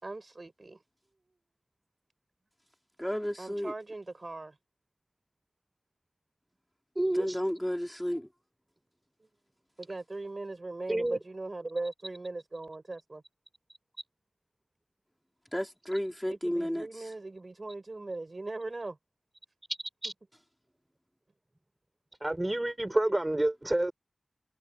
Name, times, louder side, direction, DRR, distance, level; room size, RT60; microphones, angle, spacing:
voice 1, 0.0-0.8 3.4-4.5 9.8-13.2 16.3-19.0, right 2 dB, 55° right, 4.9 m, -39 dB
voice 2, 3.0-3.7 7.1-8.3 15.5-17.1, equal, 5° left, 3.7 m, -32 dB
voice 3, 7.0-7.4 10.9-11.2 20.0-20.1 22.2-23.9, right 1 dB, 25° right, 5.9 m, -28 dB
wide cardioid pair, 50°, 0 cm